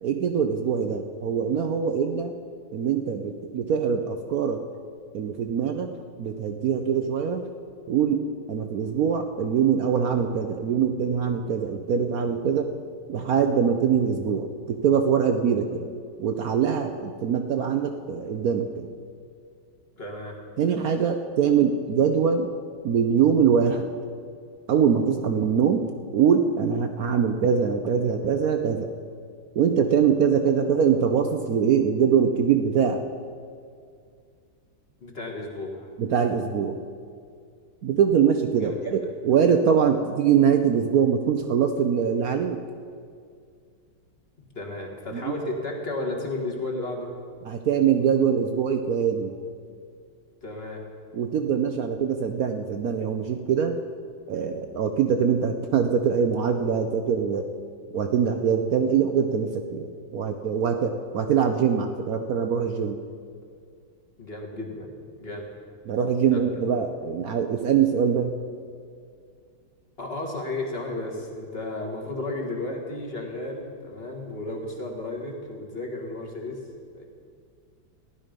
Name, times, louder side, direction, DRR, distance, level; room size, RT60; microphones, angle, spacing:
voice 1, 0.0-2.3 2.7-4.6 5.1-5.9 6.2-7.5 7.9-12.7 13.1-15.9 16.2-18.9 20.6-22.5 22.8-23.9 24.7-25.9 26.1-28.9 29.5-33.0 36.0-36.8 37.8-42.6 45.1-45.3 47.5-49.3 51.1-53.8 54.3-57.5 57.9-63.0 65.9-68.4, right 7 dB, 70° right, 6 dB, 0.8 m, -23 dB
voice 2, 20.0-20.4 35.0-35.9 38.6-38.8 44.5-47.1 50.4-50.9 64.2-65.5 66.3-66.5 70.0-76.6 76.9-77.0, left 2 dB, 30° left, 0 dB, 1.8 m, -33 dB
15.5 x 11.5 x 5.2 m, 2.2 s
omnidirectional pair, 2.2 m